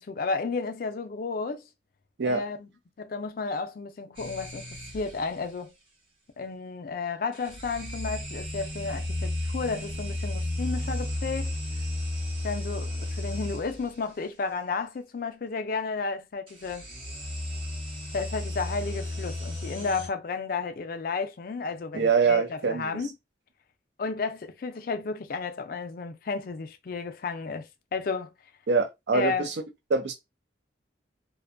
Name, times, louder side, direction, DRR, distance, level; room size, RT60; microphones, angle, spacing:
voice 1, 0.0-1.6 2.2-2.7 3.0-5.7 6.4-11.5 12.4-16.9 18.1-23.1 24.0-28.3 29.1-29.5, left 4 dB, 50° left, 0.4 m, -32 dB
sound 1, 4.2-5.4 7.3-14.0 16.5-20.1, left 1 dB, 30° right, 1.0 m, -33 dB
voice 2, 21.9-22.9 28.7-29.5 29.9-30.2, right 5 dB, 65° right, 0.5 m, -24 dB
2.5 x 2.2 x 2.5 m
head